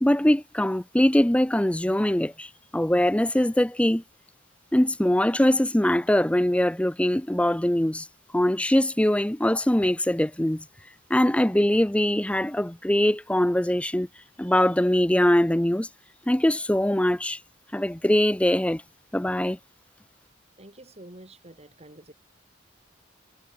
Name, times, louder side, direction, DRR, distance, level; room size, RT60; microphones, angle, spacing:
voice 1, 0.0-4.0 4.7-8.1 8.3-10.6 11.1-14.1 14.4-15.9 16.3-17.4 17.7-18.8 19.1-19.6, left 1 dB, 5° left, 0.5 m, -22 dB
voice 2, 20.6-22.1, right 1 dB, 35° right, 4.1 m, -47 dB
head